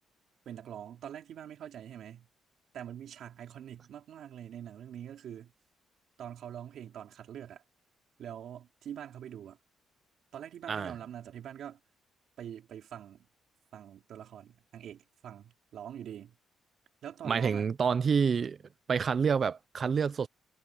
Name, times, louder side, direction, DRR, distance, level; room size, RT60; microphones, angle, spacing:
voice 1, 0.5-2.3 2.7-5.5 6.2-7.6 8.2-9.6 10.3-11.8 12.4-13.3 13.7-16.4 17.0-17.7, right 10 dB, 70° right, 4.1 m, -44 dB
voice 2, 10.7-11.0 17.2-18.6 18.9-20.3, right 6 dB, 45° right, 0.7 m, -28 dB
cardioid pair, 90°, 0 cm